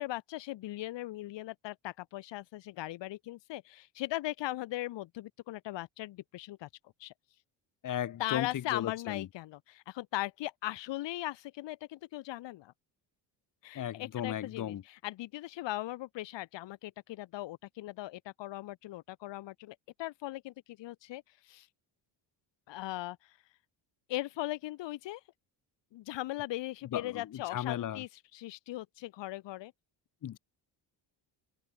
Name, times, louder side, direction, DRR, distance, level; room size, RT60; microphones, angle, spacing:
voice 1, 0.0-6.7 7.0-7.1 8.2-12.7 13.6-21.7 22.7-23.4 24.1-25.2 25.9-29.7, left 16 dB, 75° left, 2.6 m, -39 dB
voice 2, 7.8-9.3 13.7-14.8 26.9-28.0 30.2-30.4, left 11 dB, 45° left, 1.3 m, -36 dB
cardioid pair, 115°, 43 cm